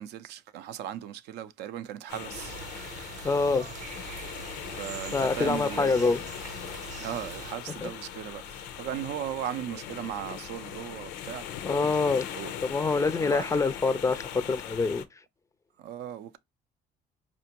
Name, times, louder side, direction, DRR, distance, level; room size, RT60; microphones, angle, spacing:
voice 1, 0.0-2.6 4.7-6.1 7.0-11.5 12.3-12.5 13.2-13.5 15.8-16.4, right 10 dB, 80° right, 0.5 m, -37 dB
sound 1, 2.1-15.0, left 9 dB, 90° left, 0.5 m, -40 dB
sound 2, 2.3-7.5, right 7 dB, 45° right, 0.7 m, -43 dB
voice 2, 3.2-3.7 5.1-6.2 7.7-7.9 11.6-12.2 12.7-15.0, left 4 dB, 20° left, 0.3 m, -26 dB
4.3 x 2.5 x 2.8 m
cardioid pair, 110°, 17 cm